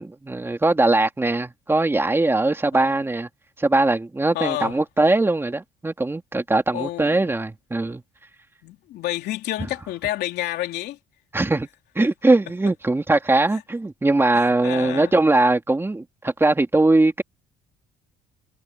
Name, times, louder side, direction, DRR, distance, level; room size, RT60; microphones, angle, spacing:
voice 1, 0.0-3.3 3.6-8.0 11.3-11.7 11.9-17.2, right 2 dB, 15° right, 2.8 m, -20 dB
voice 2, 2.7-3.0 4.3-4.8 6.7-7.2 8.6-11.0 12.0-12.1 13.5-13.6 14.3-15.1, left 15 dB, 80° left, 3.2 m, -30 dB
cardioid pair, 110°, 17 cm